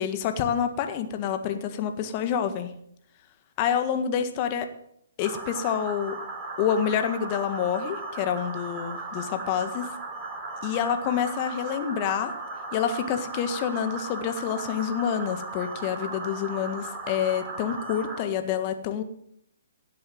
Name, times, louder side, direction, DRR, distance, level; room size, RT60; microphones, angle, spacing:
voice 1, 0.0-2.7 3.6-4.7 5.2-6.2 6.6-9.9 10.6-12.3 12.7-19.0, left 8 dB, 35° left, 8 dB, 1.7 m, -27 dB
sound 1, 5.2-18.2, right 3 dB, 20° right, 4.9 m, -36 dB
17.0 x 7.7 x 7.8 m, 0.71 s
figure-of-eight pair, 130°, 0 cm